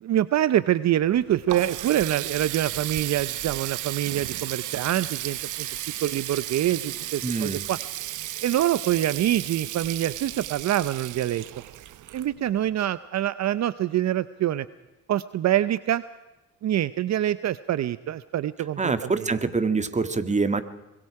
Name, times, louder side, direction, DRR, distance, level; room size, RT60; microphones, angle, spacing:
voice 1, 0.0-5.7 6.0-7.8 8.4-11.4 12.1-14.7 15.1-16.0 16.6-19.2, right 12 dB, 60° right, 15 dB, 0.7 m, -25 dB
Water tap faucet, 1.0-12.7, right 14 dB, 85° right, 1.1 m, -34 dB
voice 2, 7.2-7.7 18.8-20.6, right 4 dB, 25° right, 11 dB, 1.9 m, -25 dB
25.0 x 22.0 x 4.8 m, 1.0 s
cardioid pair, 90°, 30 cm